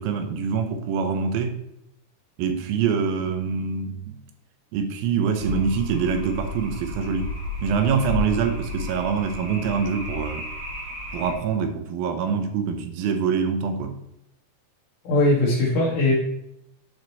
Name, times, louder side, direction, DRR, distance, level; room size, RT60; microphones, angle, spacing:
voice 1, 0.0-1.6 2.4-4.2 4.7-7.3 7.6-10.4 11.1-14.0, right 6 dB, 75° right, 7 dB, 2.6 m, -25 dB
sound 1, 5.4-11.3, left 2 dB, 45° right, 2.2 m, -32 dB
voice 2, 15.0-16.1, left 2 dB, 60° left, -5 dB, 2.8 m, -20 dB
10.5 x 5.1 x 4.1 m, 0.79 s
omnidirectional pair, 4.4 m